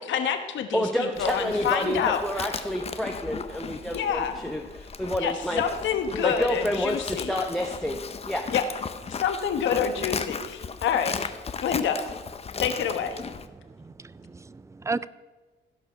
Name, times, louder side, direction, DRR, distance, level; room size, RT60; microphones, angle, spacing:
voice 1, 0.1-2.5 3.9-4.3 5.2-7.3 8.5-8.6 9.2-11.3 11.6-12.0 12.6-13.2, left 8 dB, 80° left, 7 dB, 1.2 m, -27 dB
voice 2, 0.7-5.6 6.2-8.0 8.3-8.5, equal, ahead, 3 dB, 0.9 m, -29 dB
Livestock farm animals working animals, 1.1-13.5, left 5 dB, 35° left, 0.6 m, -36 dB
voice 3, 13.8-15.1, right 3 dB, 15° right, 18 dB, 0.3 m, -34 dB
15.5 x 5.5 x 5.7 m, 1.2 s
cardioid pair, 90°, 19 cm